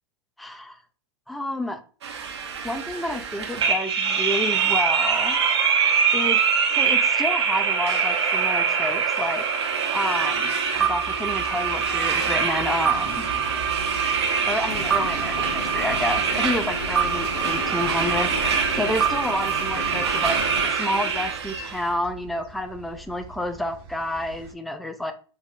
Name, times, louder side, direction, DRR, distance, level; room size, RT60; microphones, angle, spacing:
voice 1, 0.4-0.8 1.3-1.8 2.6-5.4 6.1-6.4 6.7-9.4 9.9-13.2 14.4-20.4 20.7-25.1, left 1 dB, ahead, 8 dB, 0.3 m, -29 dB
sound 1, 2.0-21.8, right 6 dB, 90° right, 0.8 m, -24 dB
sound 2, 10.7-24.5, right 5 dB, 50° right, 0.9 m, -40 dB
sound 3, 14.7-20.7, left 2 dB, 85° left, 1.3 m, -35 dB
3.9 x 2.6 x 2.6 m, 0.38 s
hypercardioid pair, 115°, 14 cm